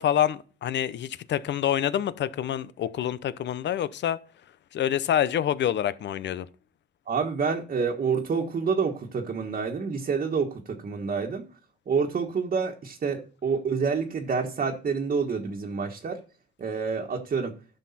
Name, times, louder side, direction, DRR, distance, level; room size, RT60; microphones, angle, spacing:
voice 1, 0.0-4.2 4.7-6.5, left 10 dB, 65° left, 0.8 m, -27 dB
voice 2, 7.1-11.5 11.9-16.2 16.6-17.6, right 5 dB, 45° right, 1.5 m, -28 dB
11.5 x 6.5 x 4.3 m
cardioid pair, 90°, 20 cm